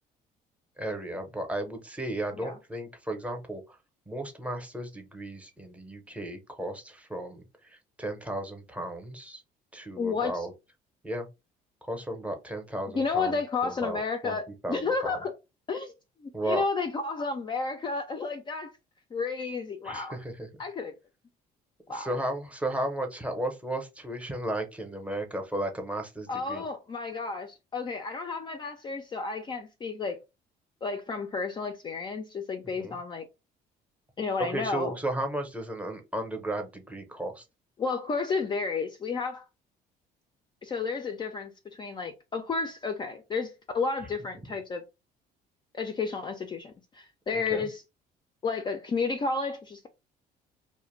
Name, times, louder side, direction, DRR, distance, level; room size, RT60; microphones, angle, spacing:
voice 1, 0.8-3.8 4.1-9.4 9.7-10.5 11.0-11.3 11.8-14.4 14.6-15.2 16.3-16.6 19.8-20.5 21.9-26.6 32.7-33.0 34.4-37.4 47.3-47.7, right 1 dB, 10° right, 0.7 m, -34 dB
voice 2, 10.0-10.5 12.9-14.4 14.7-15.3 15.7-15.9 16.2-18.7 19.1-20.2 20.6-20.9 21.9-22.1 26.3-30.2 30.8-33.3 34.2-34.9 37.8-39.5 40.6-44.8 45.7-47.8 48.4-49.9, left 4 dB, 25° left, 0.4 m, -31 dB
2.4 x 2.1 x 3.0 m
cardioid pair, 110°, 17 cm